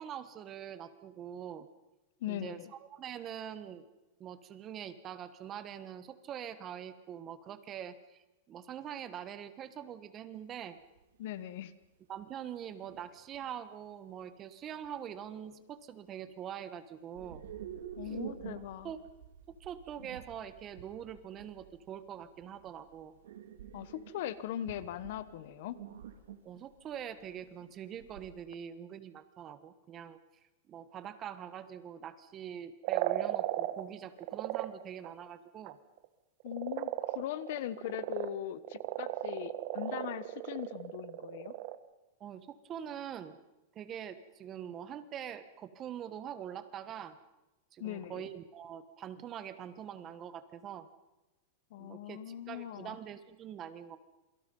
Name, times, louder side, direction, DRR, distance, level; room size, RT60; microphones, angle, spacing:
voice 1, 0.0-1.7 2.3-3.8 4.2-10.8 12.1-17.5 18.8-19.0 19.5-23.1 26.4-30.2 30.7-35.8 42.2-43.4 43.7-47.2 47.7-50.9 51.8-54.0, right 9 dB, 20° right, 12 dB, 1.3 m, -44 dB
voice 2, 2.2-2.7 11.2-11.7 18.0-18.9 23.7-25.8 36.4-41.5 47.8-48.3 51.7-53.0, left 12 dB, 55° left, 16 dB, 1.2 m, -40 dB
sound 1, 10.3-10.4 11.0-11.2 11.8-11.9 12.8-13.5 14.8-14.9 15.3-15.7 17.1-28.4, right 9 dB, 85° right, 3.4 m, -48 dB
sound 2, 32.8-33.9 34.2-34.7 35.0-35.3 35.7-35.8 36.0-36.1 36.4-38.3 38.6-41.8, right 15 dB, 45° right, 1.3 m, -35 dB
28.0 x 24.0 x 5.5 m, 1.0 s
supercardioid pair, 165°, 0 cm